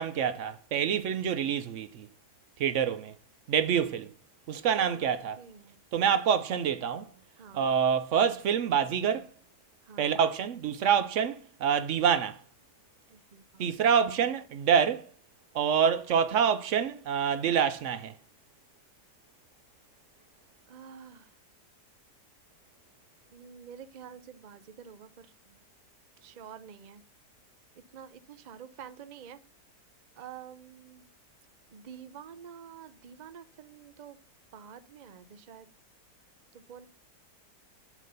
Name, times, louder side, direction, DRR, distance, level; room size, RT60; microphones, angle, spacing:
voice 1, 0.0-2.1 2.6-3.1 3.5-4.1 4.5-5.4 5.9-7.1 7.5-9.3 10.0-12.4 13.6-15.1 15.5-18.1, right 7 dB, 65° right, 0.7 m, -26 dB
voice 2, 5.4-5.8 7.4-7.7 9.9-10.3 13.1-13.8 20.7-21.3 23.3-25.6 26.2-27.0 27.9-29.4 30.2-31.0 31.7-34.2 34.5-35.7 36.5-36.9, right 8 dB, 85° right, 0.4 m, -48 dB
7.3 x 4.0 x 6.7 m
omnidirectional pair, 1.8 m